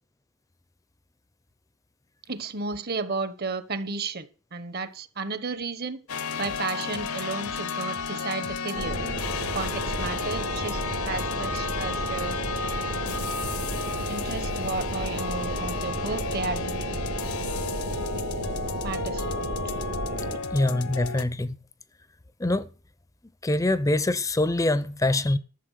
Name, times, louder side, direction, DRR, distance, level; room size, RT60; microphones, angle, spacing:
voice 1, 2.3-6.0 6.4-9.0 9.5-12.4 14.1-17.0 18.1-18.3 18.8-19.8 20.1-20.2, right 4 dB, 45° right, 1.0 m, -33 dB
sound 1, 6.1-21.2, left 5 dB, 85° left, 1.0 m, -33 dB
sound 2, 8.7-20.4, right 2 dB, 80° right, 2.4 m, -32 dB
voice 2, 20.5-21.5 22.4-22.6 23.4-25.4, left 2 dB, 15° left, 0.5 m, -24 dB
12.5 x 7.2 x 6.4 m
head